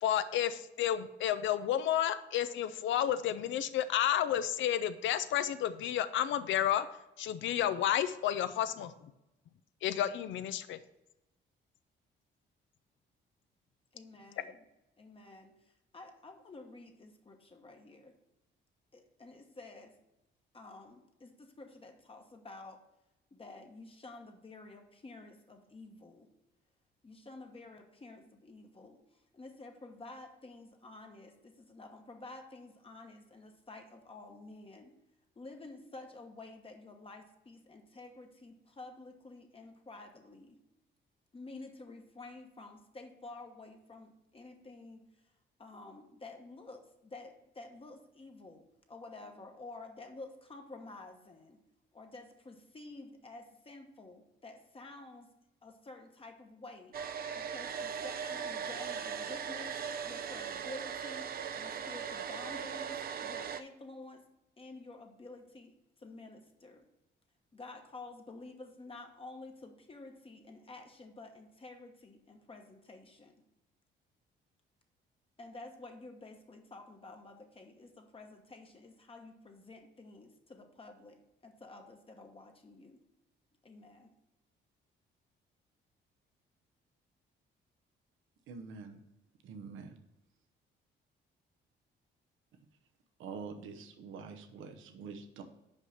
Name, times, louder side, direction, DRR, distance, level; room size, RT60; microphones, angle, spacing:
voice 1, 0.0-6.9 7.2-8.9 9.8-10.8, left 11 dB, 75° left, 12 dB, 0.5 m, -31 dB
voice 2, 13.9-14.6 15.0-18.2 18.9-19.9 20.5-22.8 23.3-26.3 27.0-34.9 35.4-40.6 41.3-45.1 45.6-51.6 51.9-55.3 55.6-57.0 57.3-61.3 61.6-64.2 64.6-66.8 67.5-73.3 75.4-83.0 83.6-84.1, left 2 dB, 30° left, 3 dB, 1.0 m, -50 dB
Domestic sounds home sounds, 56.9-63.6, right 7 dB, 50° right, 0.5 m, -39 dB
voice 3, 88.5-89.0 89.4-90.0 93.2-95.4, right 5 dB, 85° right, 6 dB, 0.9 m, -45 dB
5.3 x 4.9 x 5.6 m, 0.92 s
cardioid pair, 90°, 20 cm